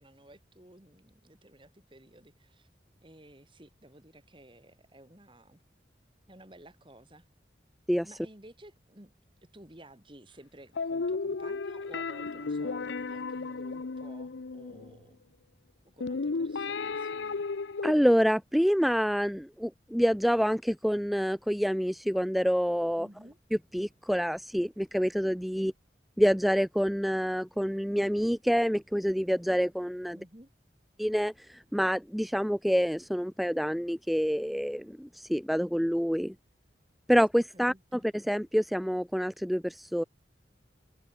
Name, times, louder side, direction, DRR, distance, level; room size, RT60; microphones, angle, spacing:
voice 1, 0.0-2.7 3.0-5.6 6.3-7.3 8.0-9.1 9.4-15.2 15.9-17.4 23.0-23.4 25.6-25.7 30.1-30.5 37.5-38.0, right 1 dB, 25° right, 2.9 m, -54 dB
sound 1, 10.8-15.0 16.0-17.9, left 4 dB, 85° left, 0.7 m, -34 dB
voice 2, 17.8-23.1 23.5-25.7 26.2-30.2 31.0-36.3 37.1-40.0, equal, ahead, 0.5 m, -27 dB
head